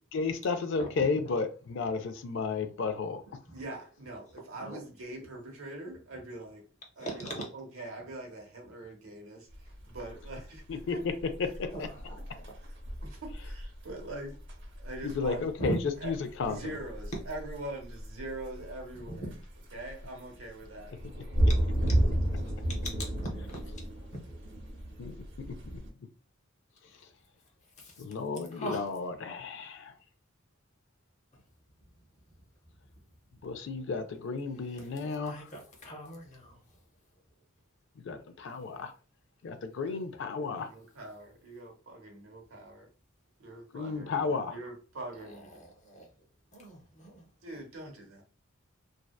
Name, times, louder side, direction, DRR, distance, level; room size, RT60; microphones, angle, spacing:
voice 1, 0.1-3.2 10.7-11.1 11.4-11.9 15.0-15.8 16.0-16.6 25.0-25.8 28.0-29.9 33.4-35.5 38.0-38.9 39.4-40.7 43.7-44.5, left 4 dB, 65° left, 0.4 m, -33 dB
voice 2, 3.5-6.6 7.0-11.0 12.6-12.7 13.0-14.4 14.8-15.4 16.0-16.1 16.5-19.3 19.7-20.9 39.9-42.9 43.4-45.6 47.4-48.2, right 2 dB, 85° right, 0.9 m, -43 dB
voice 3, 7.0-7.5 11.7-12.6 15.6-15.8 19.2-19.3 23.2-23.3 24.1-24.2 27.8-28.0 28.5-28.9 35.2-36.6 45.5-46.1 46.5-47.3, right 1 dB, 35° left, 0.7 m, -40 dB
sound 1, 9.5-25.9, right 1 dB, 60° right, 0.7 m, -33 dB
2.6 x 2.1 x 2.3 m
head